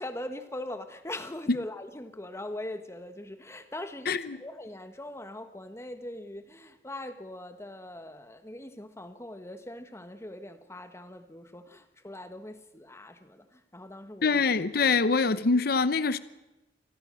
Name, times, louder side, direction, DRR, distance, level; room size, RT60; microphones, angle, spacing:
voice 1, 0.0-14.4, left 1 dB, 15° left, 1.5 m, -41 dB
voice 2, 4.1-4.4 14.2-16.2, left 4 dB, 60° left, 0.8 m, -24 dB
26.5 x 16.5 x 6.4 m
head